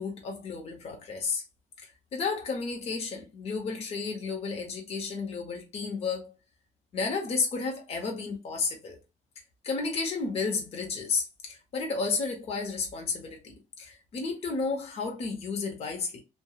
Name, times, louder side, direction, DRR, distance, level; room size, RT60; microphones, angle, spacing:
voice 1, 0.0-1.4 2.1-6.3 6.9-9.0 9.6-16.2, left 4 dB, 50° left, 0.9 m, -32 dB
2.9 x 2.3 x 2.3 m
cardioid pair, 125°, 13 cm